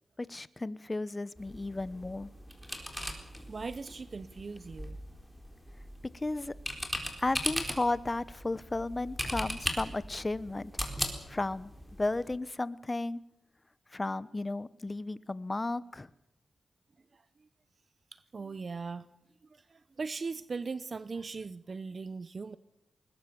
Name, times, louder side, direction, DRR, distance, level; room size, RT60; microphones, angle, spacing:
voice 1, 0.2-2.3 6.1-6.5 7.2-10.7 11.3-11.7 12.0-13.2 13.9-16.1, left 2 dB, 30° left, 17 dB, 0.9 m, -34 dB
sound 1, 1.4-12.4, equal, ahead, 4.3 m, -39 dB
voice 2, 3.5-5.0 18.3-19.0 19.7-22.6, right 4 dB, 50° right, 15 dB, 0.7 m, -39 dB
21.0 x 20.0 x 7.0 m, 0.87 s
cardioid pair, 60°, 0 cm